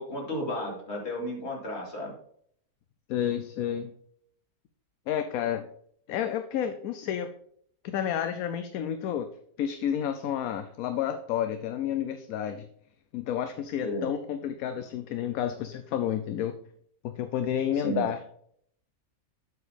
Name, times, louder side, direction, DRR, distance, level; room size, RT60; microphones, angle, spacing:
voice 1, 0.0-2.1 13.8-14.1 17.8-18.1, equal, 45° left, -2 dB, 2.5 m, -33 dB
voice 2, 3.1-3.9 5.1-5.6 6.1-7.3 7.8-9.3 9.6-12.6 13.1-16.6 17.0-18.3, left 9 dB, 75° left, 9 dB, 1.0 m, -30 dB
7.9 x 4.7 x 5.0 m, 0.66 s
omnidirectional pair, 1.6 m